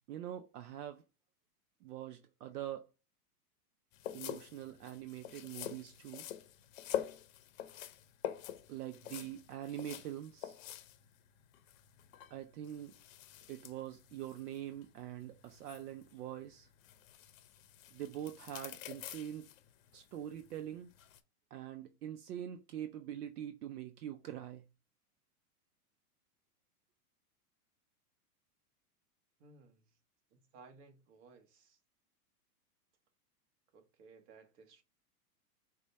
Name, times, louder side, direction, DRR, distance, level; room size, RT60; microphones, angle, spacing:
voice 1, 0.1-1.0 1.8-2.9 4.1-6.3 8.7-10.5 12.3-13.0 13.5-16.7 17.9-19.5 19.9-20.9 21.5-24.7, right 11 dB, 75° right, 0.7 m, -44 dB
sound 1, 3.9-21.2, left 11 dB, 60° left, 0.7 m, -47 dB
voice 2, 29.4-29.9 30.3-31.8 33.7-34.8, right 4 dB, 50° right, 1.2 m, -59 dB
4.9 x 2.3 x 4.0 m
hypercardioid pair, 140°, 47 cm